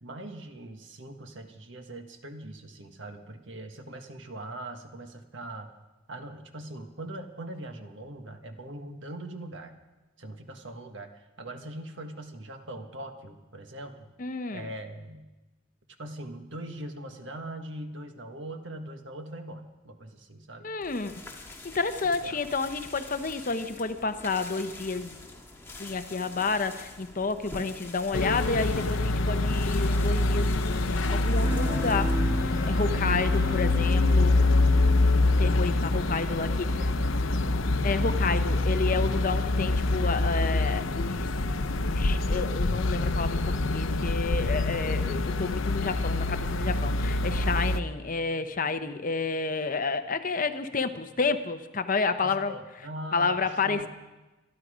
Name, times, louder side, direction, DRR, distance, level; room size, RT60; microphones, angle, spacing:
voice 1, 0.0-5.7 6.1-9.8 10.2-14.1 14.5-15.3 16.0-20.8 22.2-22.4 33.1-33.6 35.9-37.6 52.2-53.9, right 1 dB, 65° right, 5 dB, 1.6 m, -41 dB
voice 2, 14.2-14.7 20.6-21.2 21.6-25.1 25.8-32.1 32.6-34.4 35.4-36.7 37.8-41.3 41.9-52.5 53.1-53.9, left 4 dB, 45° left, 9 dB, 0.8 m, -30 dB
sound 1, 20.8-32.2, left 2 dB, 15° left, 1.7 m, -46 dB
sound 2, 28.1-47.8, left 2 dB, 80° left, 0.7 m, -25 dB
sound 3, 31.4-51.4, left 1 dB, 20° right, 2.4 m, -40 dB
25.5 x 11.0 x 5.1 m, 1.1 s
head